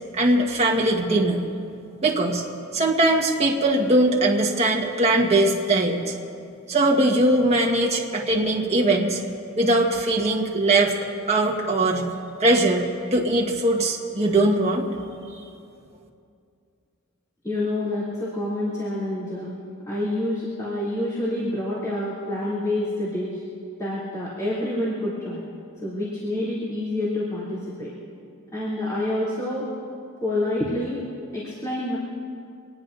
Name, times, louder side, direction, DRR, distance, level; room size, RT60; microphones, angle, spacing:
voice 1, 0.1-1.4 2.0-2.4 2.7-6.0 6.7-9.2 9.6-10.9 11.3-12.1 12.4-14.9, right 2 dB, 30° right, -1 dB, 1.5 m, -20 dB
voice 2, 17.4-19.5 19.8-23.4 23.8-25.4 25.8-27.9 28.5-29.7 30.2-32.0, left 1 dB, 15° left, -10 dB, 3.2 m, -27 dB
25.5 x 19.5 x 2.7 m, 2.4 s
head